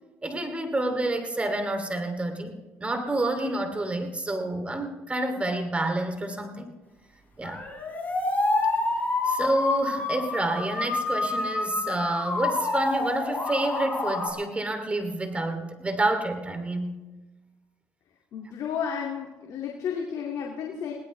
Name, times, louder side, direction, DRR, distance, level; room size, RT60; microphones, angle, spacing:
voice 1, 0.2-6.7 7.4-7.6 9.2-17.0, right 2 dB, 20° right, 6 dB, 2.6 m, -28 dB
sound 1, 7.4-14.3, left 3 dB, 25° left, 5.1 m, -28 dB
voice 2, 18.3-20.9, left 7 dB, 65° left, 0 dB, 2.2 m, -32 dB
21.0 x 18.0 x 3.2 m, 1.2 s
supercardioid pair, 70°, 6 cm